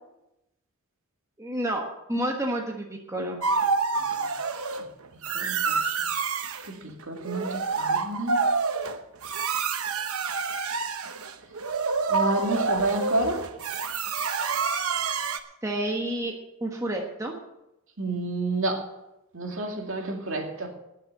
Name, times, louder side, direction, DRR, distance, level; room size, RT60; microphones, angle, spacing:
voice 1, 1.4-3.4 15.6-16.3 16.6-17.3, right 1 dB, 15° right, 1 dB, 1.3 m, -29 dB
sound 1, 3.4-4.8 5.2-6.7 7.2-15.4, right 4 dB, 80° right, 0.9 m, -28 dB
voice 2, 3.9-4.3 5.3-5.9 6.8-8.4 12.1-13.4 18.0-18.9 19.3-20.7, right 2 dB, 65° right, 2 dB, 2.4 m, -29 dB
18.0 x 6.6 x 6.7 m, 0.90 s
head